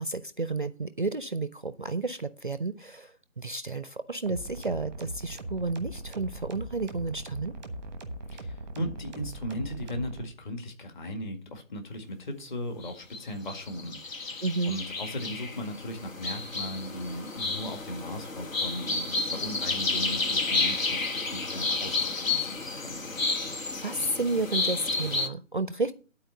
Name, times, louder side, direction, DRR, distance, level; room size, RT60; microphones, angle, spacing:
voice 1, 0.0-7.6 14.4-14.8 23.7-25.9, right 3 dB, 40° right, 0.4 m, -31 dB
sound 1, 4.3-10.2, right 1 dB, 5° right, 0.7 m, -39 dB
voice 2, 8.3-23.0, left 1 dB, 35° left, 2.0 m, -37 dB
sound 2, 12.8-13.2 13.5-25.3, left 3 dB, 75° left, 1.4 m, -31 dB
11.5 x 4.4 x 6.4 m
figure-of-eight pair, 150°, 40 cm